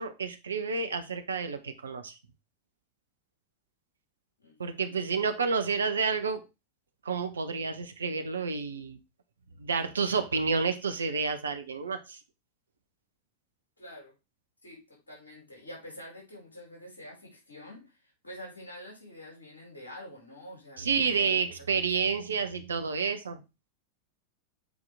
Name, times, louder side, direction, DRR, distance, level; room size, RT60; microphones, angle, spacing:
voice 1, 0.0-2.1 4.6-6.5 7.0-9.0 9.6-12.2 20.8-23.4, right 5 dB, 70° right, 1.0 m, -30 dB
voice 2, 4.4-4.8 13.8-14.1 14.6-22.1, left 1 dB, 75° left, 5.0 m, -47 dB
8.3 x 4.8 x 3.5 m
figure-of-eight pair, 90°, 0 cm